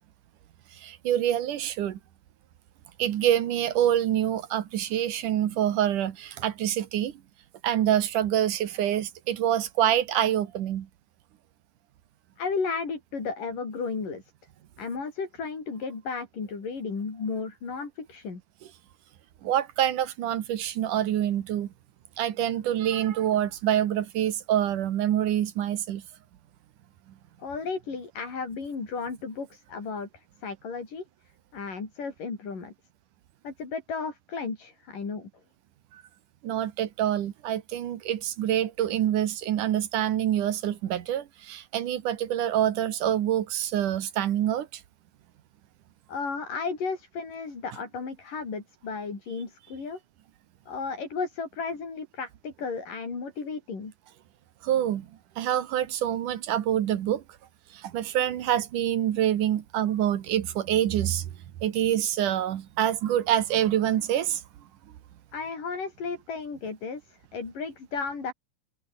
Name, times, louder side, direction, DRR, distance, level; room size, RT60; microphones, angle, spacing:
voice 1, 0.8-2.0 3.0-7.1 7.6-10.9 19.4-21.7 22.2-26.0 36.4-44.8 54.6-55.1 55.4-57.2 57.7-61.3 61.6-64.4, right 11 dB, 75° right, 3.0 m, -26 dB
voice 2, 12.4-14.2 14.8-18.4 27.4-31.0 31.5-32.7 33.4-35.3 46.1-50.0 50.7-53.9 65.3-68.3, left 4 dB, 80° left, 7.3 m, -34 dB
omnidirectional pair, 3.7 m